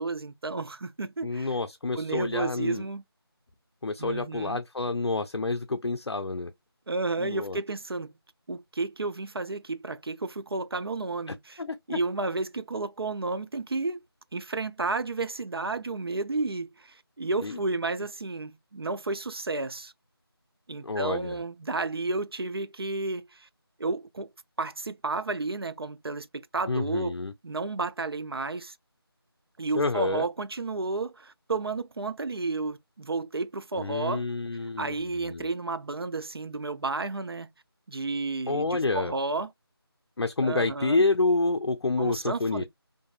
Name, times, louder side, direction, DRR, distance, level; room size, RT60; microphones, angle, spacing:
voice 1, 0.0-1.5 2.0-3.0 4.0-4.6 6.9-8.2 8.5-11.6 11.9-14.0 14.3-19.9 20.7-23.5 23.8-24.3 24.6-27.1 27.4-28.8 29.6-34.2 34.8-37.5 37.9-39.5 40.4-41.0 42.0-42.6, right 3 dB, 65° right, 0.4 m, -32 dB
voice 2, 1.2-2.9 3.8-6.5 7.2-7.6 11.3-12.0 17.4-17.6 20.8-21.4 26.7-27.3 29.7-30.3 33.7-35.5 38.5-39.1 40.2-42.6, left 3 dB, 85° left, 0.4 m, -28 dB
2.5 x 2.4 x 2.3 m
figure-of-eight pair, 165°, 13 cm